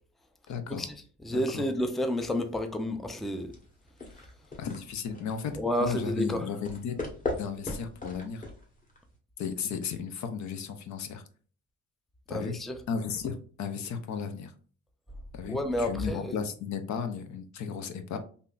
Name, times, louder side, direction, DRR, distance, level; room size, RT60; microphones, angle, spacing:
voice 1, 0.5-0.8 1.3-1.6 4.6-5.5 5.8-7.0 7.4-8.4 9.4-11.2 12.3-12.6 12.9-14.5 15.3-18.2, left 6 dB, 70° left, 0.6 m, -34 dB
voice 2, 1.2-3.5 5.6-6.5 12.3-12.8 15.5-16.4, equal, ahead, 0.4 m, -30 dB
sound 1, 3.5-9.1, left 2 dB, 25° left, 1.1 m, -39 dB
3.5 x 2.6 x 2.4 m
cardioid pair, 90°, 30 cm